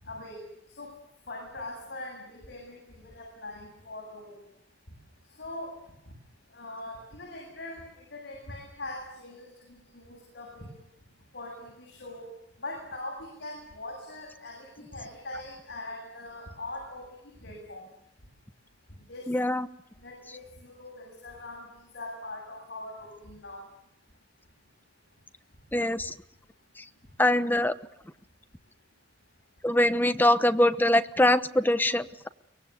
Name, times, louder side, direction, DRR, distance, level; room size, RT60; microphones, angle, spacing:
voice 1, 0.0-0.4 0.8-0.9 1.3-4.4 5.4-5.7 6.5-10.8 11.3-12.3 12.6-17.1 17.4-17.8 19.1-19.3 20.0-21.7 21.9-23.6, left 2 dB, 60° left, 0 dB, 7.9 m, -41 dB
voice 2, 19.3-19.7 25.7-26.1 26.8-26.9 27.2-27.7 29.6-32.3, left 1 dB, 10° left, 11 dB, 0.9 m, -23 dB
23.5 x 20.5 x 8.2 m, 0.79 s
head